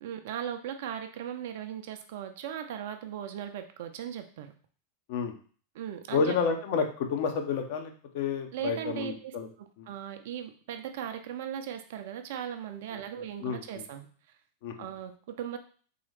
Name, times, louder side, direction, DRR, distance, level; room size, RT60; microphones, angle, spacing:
voice 1, 0.0-4.5 5.7-6.4 8.5-14.1 14.8-15.6, right 9 dB, 55° right, 7 dB, 0.5 m, -38 dB
voice 2, 6.1-9.5 9.8-9.9 13.4-13.6 14.6-14.7, left 5 dB, 50° left, 4 dB, 0.6 m, -30 dB
3.8 x 3.1 x 3.3 m, 0.43 s
figure-of-eight pair, 90°, 0 cm